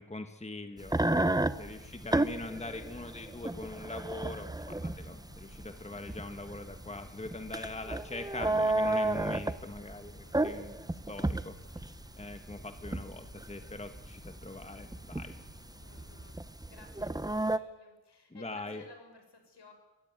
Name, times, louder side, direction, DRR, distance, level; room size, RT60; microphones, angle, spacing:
voice 1, 0.0-1.3 1.6-10.8 11.1-11.8 12.2-15.3 18.3-18.8, left 2 dB, 15° left, 7 dB, 1.5 m, -42 dB
sound 1, 0.8-17.6, right 2 dB, 10° right, 0.8 m, -33 dB
sound 2, 1.6-16.3, left 2 dB, 35° left, 3.0 m, -57 dB
voice 2, 5.7-6.3 10.2-11.0 15.8-16.4 16.7-19.7, left 3 dB, 70° left, 5 dB, 6.6 m, -57 dB
24.5 x 17.0 x 9.5 m, 1.1 s
wide cardioid pair, 110°, 42 cm